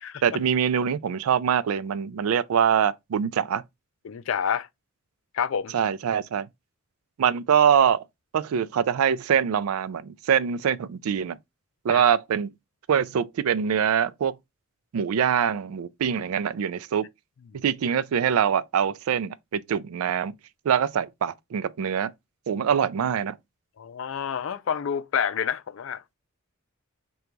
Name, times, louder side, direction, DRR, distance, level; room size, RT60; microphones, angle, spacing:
voice 1, 0.2-3.6 5.7-6.5 7.2-8.0 8.3-11.4 11.8-12.5 12.9-14.4 14.9-17.1 17.6-20.3 20.7-22.1 22.5-23.4, right 8 dB, 85° right, 0.4 m, -24 dB
voice 2, 4.0-4.7 5.3-5.7 11.9-12.0 17.5-17.6 23.8-26.0, left 7 dB, 65° left, 0.4 m, -28 dB
3.8 x 2.3 x 4.5 m
head